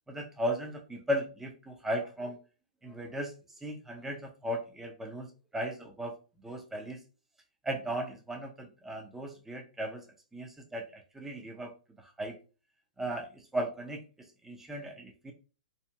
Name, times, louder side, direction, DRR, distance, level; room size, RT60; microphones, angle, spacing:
voice 1, 0.1-2.4 2.8-3.3 3.6-6.2 6.4-7.0 7.6-10.0 10.3-11.7 12.2-12.3 13.0-15.3, equal, 5° right, 2 dB, 0.6 m, -36 dB
2.7 x 2.5 x 2.2 m, 0.34 s
hypercardioid pair, 115°, 4 cm